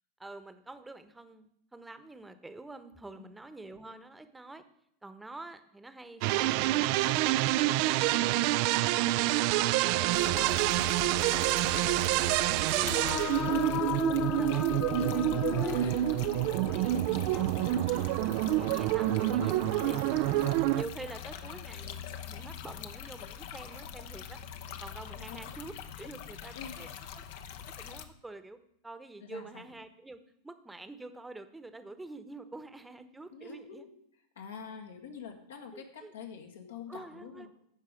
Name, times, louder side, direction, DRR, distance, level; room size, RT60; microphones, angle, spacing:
voice 1, 0.2-4.6 5.0-7.5 7.7-9.8 10.2-12.3 12.7-14.0 14.3-16.1 16.5-18.2 18.6-20.3 20.7-26.9 27.1-27.2 27.8-28.6 28.8-30.2 30.4-33.8 35.7-36.1 36.9-37.5, right 2 dB, 10° right, 11 dB, 1.0 m, -47 dB
sound 1, 6.2-20.8, right 15 dB, 55° right, 0.3 m, -27 dB
voice 2, 8.3-8.7 10.5-11.0 14.5-14.8 15.7-16.1 18.5-19.1 21.4-21.9 25.3-25.4 26.5-26.8 29.2-29.7 33.3-34.0 34.4-37.5, left 6 dB, 75° left, 3 dB, 1.8 m, -47 dB
sound 2, 10.1-28.0, left 8 dB, 60° left, 0.9 m, -43 dB
sound 3, 12.7-16.6, left 9 dB, 35° left, 0.5 m, -35 dB
14.5 x 5.3 x 5.1 m, 0.74 s
hypercardioid pair, 90°, 0 cm